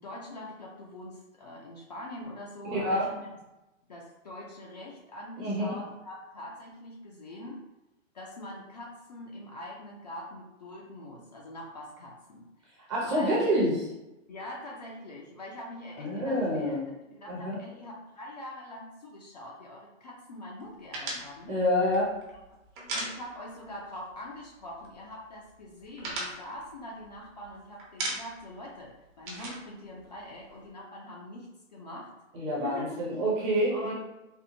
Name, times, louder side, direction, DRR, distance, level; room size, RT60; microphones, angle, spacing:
voice 1, 0.0-3.3 3.9-7.6 8.1-13.4 14.3-16.8 17.1-21.6 22.9-32.1 32.6-32.9 33.7-33.9, left 1 dB, 35° left, -3 dB, 0.4 m, -43 dB
voice 2, 2.6-3.1 5.4-5.7 12.9-13.7 16.0-16.8 17.3-17.6 21.5-22.1 32.3-33.9, equal, 20° right, -5 dB, 0.8 m, -27 dB
sound 1, 20.9-23.7 24.0-24.2 24.5-25.1 25.5-27.5 27.8-28.5 28.8-30.6, right 2 dB, 40° right, 1.0 m, -37 dB
4.2 x 2.4 x 2.7 m, 0.99 s
hypercardioid pair, 155°, 40 cm